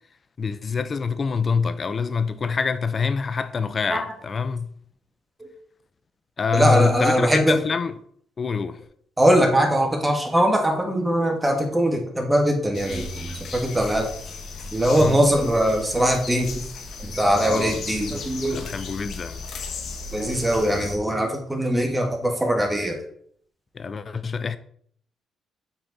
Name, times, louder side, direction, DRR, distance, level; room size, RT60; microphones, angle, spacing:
voice 1, 0.4-4.7 6.4-7.9 8.4-8.8 15.0-15.2 17.4-17.8 18.5-19.4 23.7-24.6, left 5 dB, 40° left, 0.6 m, -25 dB
voice 2, 6.5-7.6 9.2-14.1 14.7-16.5 17.0-18.7 20.1-23.0, equal, 10° right, 1.7 m, -21 dB
sound 1, 12.7-21.0, left 4 dB, 65° left, 1.4 m, -36 dB
7.8 x 4.4 x 4.0 m
cardioid pair, 90°, 0 cm